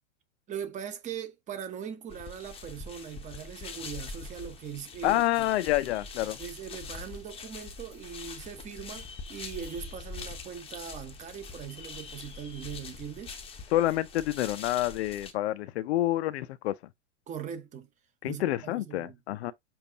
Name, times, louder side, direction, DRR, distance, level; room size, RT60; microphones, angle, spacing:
voice 1, 0.5-5.5 6.4-13.4 17.3-17.9 18.2-19.2, right 8 dB, 20° right, 0.9 m, -40 dB
sound 1, 2.1-15.3, left 4 dB, 15° left, 0.8 m, -43 dB
voice 2, 5.0-6.4 13.7-16.7 18.2-19.5, left 15 dB, 60° left, 0.5 m, -28 dB
7.0 x 2.5 x 2.8 m
hypercardioid pair, 125°, 37 cm